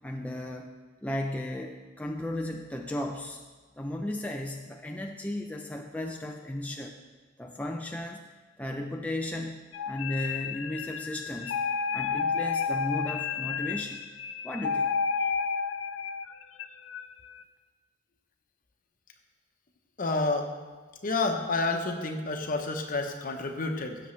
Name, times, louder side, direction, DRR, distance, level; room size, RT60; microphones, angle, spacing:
voice 1, 0.0-0.7 1.0-3.4 3.8-7.0 7.4-8.2 8.6-9.6 9.9-11.6 11.9-14.0 14.4-14.9, left 1 dB, 10° left, 1 dB, 0.4 m, -35 dB
sound 1, 9.7-17.0, left 5 dB, 75° left, 0.5 m, -31 dB
voice 2, 20.0-20.5 21.0-24.0, left 3 dB, 45° left, 4 dB, 1.0 m, -29 dB
16.0 x 6.9 x 3.2 m, 1.4 s
head